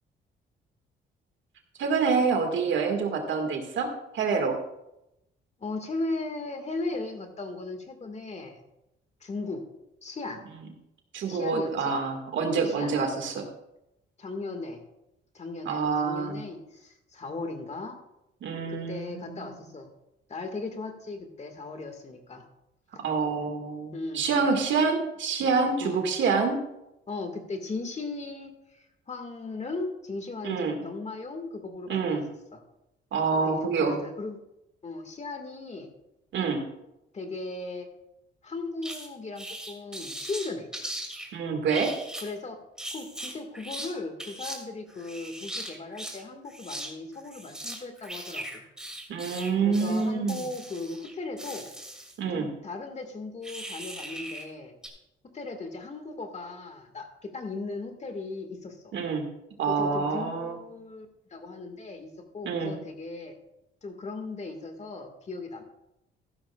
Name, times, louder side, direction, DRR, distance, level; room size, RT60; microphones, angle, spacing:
voice 1, 1.8-4.6 11.1-13.5 15.7-16.4 18.4-19.6 23.0-26.6 30.4-30.8 31.9-32.2 33.1-34.0 36.3-36.6 41.3-41.9 49.1-50.4 52.2-52.5 58.9-59.2 59.6-60.6 62.4-62.7, right 5 dB, 70° right, 4 dB, 2.0 m, -27 dB
voice 2, 5.6-8.6 9.2-9.6 10.0-10.4 11.2-12.0 12.6-12.9 14.2-14.8 15.3-18.0 18.7-19.9 20.3-22.4 22.9-23.0 23.9-24.3 25.8-26.0 27.1-32.2 32.5-32.6 33.3-34.4 34.8-35.9 37.1-37.9 38.4-40.7 42.2-42.6 42.9-48.6 49.6-51.7 52.3-54.7 55.3-58.9 59.7-63.3 63.8-65.6, left 3 dB, 35° left, 5 dB, 1.9 m, -37 dB
sound 1, 38.8-39.1 39.3-41.3 41.7-42.3 42.8-43.9 44.2-44.6 44.9-46.2 46.5-46.9 47.1-52.2 53.4-54.5 54.8-54.9, right 1 dB, 5° right, 2.6 m, -39 dB
14.5 x 12.0 x 2.4 m, 0.88 s
cardioid pair, 90°, 20 cm